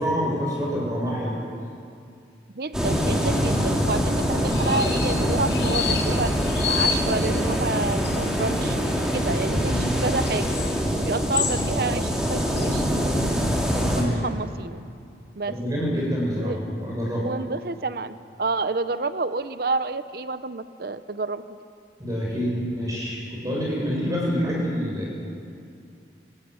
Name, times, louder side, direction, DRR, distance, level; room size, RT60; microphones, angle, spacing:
voice 1, 0.0-1.4 9.7-9.9 13.9-14.2 15.5-17.3 22.0-25.1, equal, 20° right, -4 dB, 7.3 m, -27 dB
voice 2, 2.6-6.3 6.7-8.8 9.1-10.6 10.9-13.1 13.7-14.8 15.4-15.5 16.4-16.6 17.2-21.6, right 3 dB, 55° right, 12 dB, 0.7 m, -29 dB
sound 1, 2.7-14.0, equal, 5° right, 3.1 m, -24 dB
sound 2, 4.5-12.9, left 7 dB, 85° left, 6.1 m, -32 dB
27.5 x 15.5 x 9.7 m, 2.4 s
head